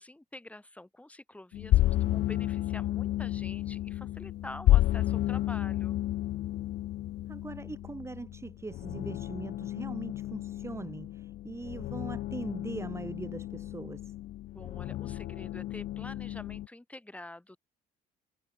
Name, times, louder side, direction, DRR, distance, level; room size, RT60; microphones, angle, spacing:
voice 1, 0.0-6.0 14.5-17.6, left 1 dB, 10° left, 6.4 m, -47 dB
sound 1, 1.5-16.7, left 14 dB, 70° left, 1.2 m, -31 dB
voice 2, 7.3-14.1, right 3 dB, 15° right, 2.6 m, -41 dB
cardioid pair, 110°, 17 cm